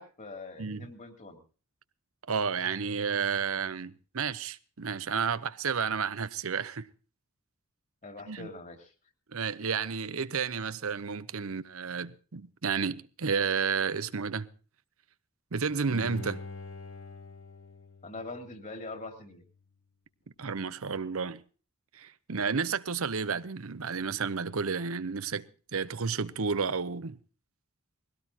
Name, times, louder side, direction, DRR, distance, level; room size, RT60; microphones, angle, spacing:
voice 1, 0.0-1.4 8.0-8.9 18.0-19.4, left 2 dB, 35° left, 2.9 m, -43 dB
voice 2, 2.3-6.9 8.3-8.5 9.3-14.5 15.5-16.4 20.4-21.4 21.9-25.5 25.7-27.2, right 5 dB, 70° right, 0.8 m, -31 dB
Bowed string instrument, 15.9-19.0 19.4-19.5, left 3 dB, 60° left, 2.4 m, -45 dB
21.0 x 17.0 x 2.9 m
head